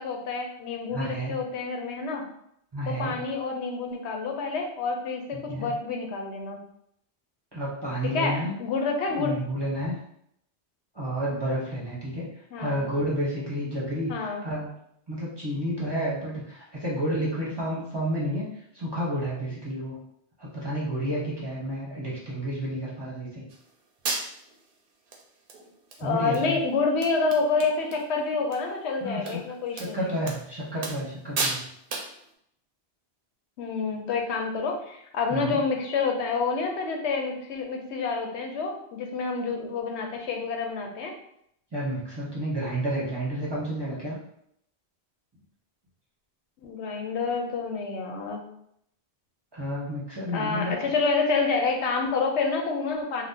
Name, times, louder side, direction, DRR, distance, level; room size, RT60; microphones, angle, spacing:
voice 1, 0.0-2.2 2.9-6.6 8.1-9.4 12.5-12.8 14.1-14.4 26.0-30.1 33.6-41.1 46.6-48.4 50.3-53.2, left 4 dB, 85° left, 2 dB, 0.9 m, -28 dB
voice 2, 0.9-1.4 2.7-3.1 5.5-5.7 7.5-8.5 9.2-10.0 10.9-12.3 12.6-14.7 15.1-18.5 18.7-20.0 20.4-23.4 26.0-26.6 29.0-29.4 29.8-31.7 35.3-35.6 41.7-44.2 49.5-50.9, equal, 25° right, -6 dB, 0.7 m, -30 dB
sound 1, 23.5-23.6 24.0-24.6 25.1-25.2 25.5-26.0 26.3-26.4 26.7-26.8 27.0-28.0 28.3-28.6 29.3-29.4 29.7-29.9 30.3-30.4 30.8-31.1 31.4-31.6 31.9-32.1, right 3 dB, 60° right, 0.7 m, -32 dB
2.7 x 2.0 x 3.5 m, 0.72 s
omnidirectional pair, 1.1 m